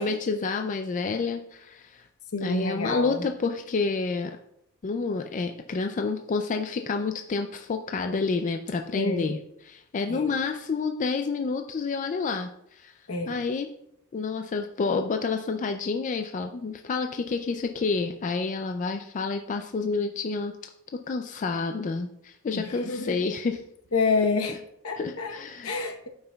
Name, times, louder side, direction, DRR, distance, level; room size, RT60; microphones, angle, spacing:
voice 1, 0.0-2.1 2.4-4.4 4.8-9.4 9.7-13.0 13.3-13.7 14.1-20.5 20.9-23.6 25.0-25.9, left 4 dB, 35° left, 6 dB, 0.3 m, -29 dB
voice 2, 2.3-3.3 8.9-9.3 10.1-10.3 13.1-13.4 22.5-23.3 23.9-24.6 24.8-26.1, left 3 dB, 70° left, 4 dB, 0.9 m, -28 dB
12.5 x 5.5 x 2.3 m, 0.78 s
head